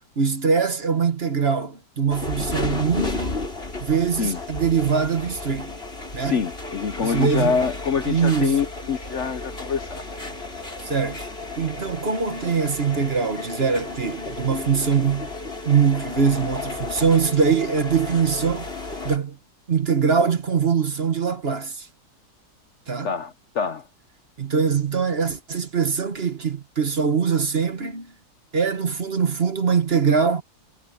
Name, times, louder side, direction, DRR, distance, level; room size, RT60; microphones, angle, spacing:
voice 1, 0.2-3.4 3.8-5.8 6.1-6.4 7.0-7.5 8.1-8.7 10.8-11.2 11.6-15.3 15.6-18.7 19.0-19.4 19.7-21.9 22.9-23.1 24.4-28.1 28.5-30.4, right 6 dB, 40° right, 1.5 m, -22 dB
sound 1, 2.1-19.2, left 3 dB, 35° left, 5.3 m, -33 dB
voice 2, 6.2-10.1 23.0-23.9, left 6 dB, 55° left, 1.0 m, -26 dB
omnidirectional pair, 1.7 m